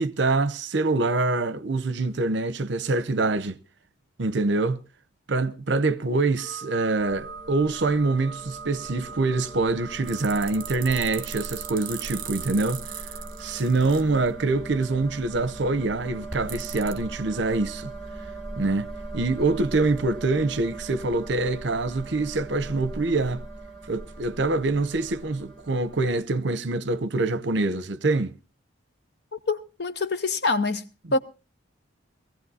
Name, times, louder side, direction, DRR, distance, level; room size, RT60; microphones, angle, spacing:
voice 1, 0.0-3.6 4.2-4.8 5.3-12.9 13.4-17.9 18.6-18.9 19.1-23.4 23.9-28.3, right 3 dB, 65° right, 0.7 m, -25 dB
sound 1, 6.4-13.8, right 4 dB, 25° left, 3.5 m, -43 dB
sound 2, 7.0-26.2, right 2 dB, ahead, 3.9 m, -40 dB
sound 3, 10.0-14.0 16.5-17.0, right 11 dB, 45° right, 1.2 m, -38 dB
voice 2, 29.3-31.2, left 3 dB, 55° left, 0.9 m, -26 dB
21.5 x 16.0 x 2.7 m
head